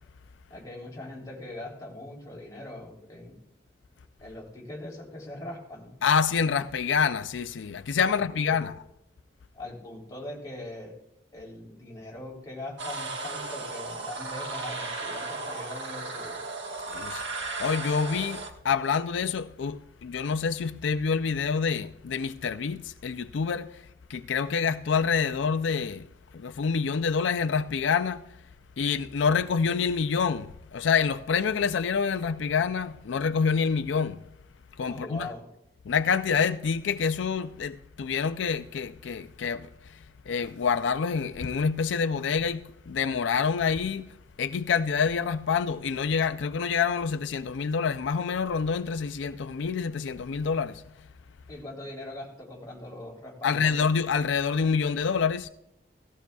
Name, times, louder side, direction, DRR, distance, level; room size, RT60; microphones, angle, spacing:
voice 1, 0.5-3.4 4.2-6.0 8.1-8.7 9.5-11.0 11.3-16.4 34.9-35.4 51.5-53.8, left 1 dB, 20° left, 3.3 m, -41 dB
voice 2, 6.0-8.7 16.9-17.2 17.6-26.0 26.3-28.2 28.8-34.2 34.8-35.3 35.9-44.1 44.4-50.8 53.4-55.5, left 6 dB, 90° left, 0.4 m, -27 dB
sound 1, 12.8-18.5, right 3 dB, 85° right, 1.5 m, -35 dB
17.5 x 15.0 x 2.3 m
head